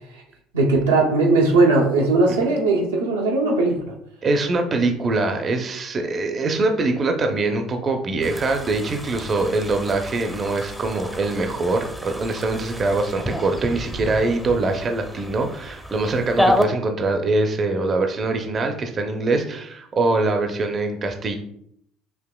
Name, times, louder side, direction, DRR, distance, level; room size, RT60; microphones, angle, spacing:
voice 1, 0.5-3.9, right 3 dB, 90° right, -2 dB, 0.7 m, -19 dB
voice 2, 4.2-21.4, right 3 dB, 40° right, 5 dB, 0.6 m, -23 dB
sound 1, 8.2-16.6, left 1 dB, 5° left, 0.7 m, -29 dB
5.9 x 2.8 x 2.3 m, 0.70 s
hypercardioid pair, 65°, 0 cm